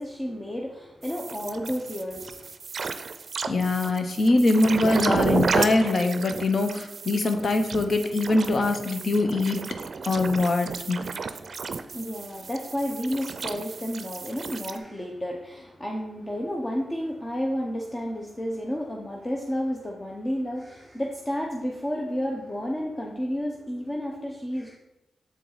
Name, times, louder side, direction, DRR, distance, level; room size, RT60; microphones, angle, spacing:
voice 1, 0.0-2.5 11.5-24.8, equal, 25° left, 0 dB, 0.9 m, -31 dB
sound 1, 1.0-14.8, right 4 dB, 60° right, 0.4 m, -32 dB
voice 2, 3.5-9.6 10.0-11.0, left 2 dB, 60° left, 6 dB, 0.8 m, -23 dB
7.1 x 4.6 x 4.0 m, 0.93 s
cardioid pair, 60°, 0 cm